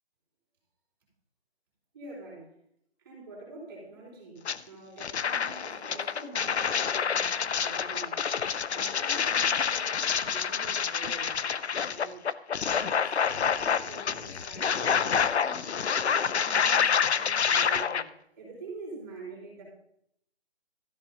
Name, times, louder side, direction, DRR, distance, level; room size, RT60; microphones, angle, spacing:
voice 1, 1.9-2.6 3.0-8.2 8.7-11.4 11.8-12.2 12.7-15.8 16.2-19.6, right 2 dB, 20° right, -7 dB, 5.2 m, -46 dB
sound 1, 4.4-4.6 5.0-18.0, left 7 dB, 90° left, 0.7 m, -27 dB
14.0 x 10.5 x 3.0 m, 0.74 s
hypercardioid pair, 175°, 32 cm